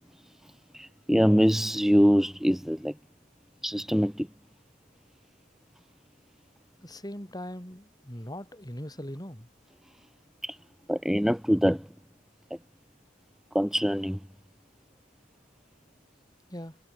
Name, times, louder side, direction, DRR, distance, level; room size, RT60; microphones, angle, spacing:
voice 1, 0.7-2.9 3.6-4.3 10.4-10.6 10.9-11.9 13.5-14.2, equal, ahead, 2.7 m, -24 dB
voice 2, 6.8-9.5 16.5-16.8, equal, 20° left, 5.7 m, -40 dB
head